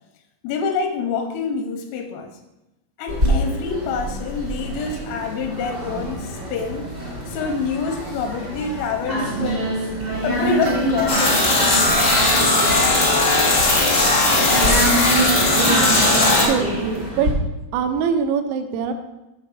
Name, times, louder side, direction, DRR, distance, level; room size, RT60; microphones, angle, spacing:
voice 1, 0.4-2.4 3.0-6.9 7.3-9.6 10.2-12.4, left 5 dB, 85° left, 5 dB, 3.3 m, -27 dB
sound 1, 3.1-17.3, right 1 dB, 35° right, 0.8 m, -26 dB
sound 2, 10.6-14.9 15.4-15.5 15.8-16.2 16.6-16.7, right 1 dB, 75° right, 1.8 m, -33 dB
sound 3, 11.1-16.4, left 2 dB, 65° left, 1.0 m, -17 dB
voice 2, 15.6-17.3 17.7-18.9, right 6 dB, 90° right, 6 dB, 3.6 m, -24 dB
8.6 x 4.6 x 6.5 m, 0.99 s
omnidirectional pair, 5.9 m